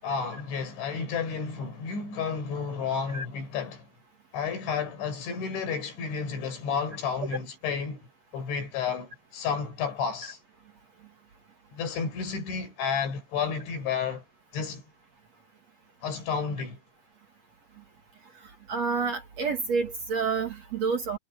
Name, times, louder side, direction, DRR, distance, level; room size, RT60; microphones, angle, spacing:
voice 1, 0.0-3.9 4.3-10.4 11.7-14.2 14.5-14.8 16.0-16.8, left 6 dB, 90° left, 7.7 m, -31 dB
voice 2, 18.7-21.2, right 5 dB, 50° right, 2.5 m, -28 dB
omnidirectional pair, 5.1 m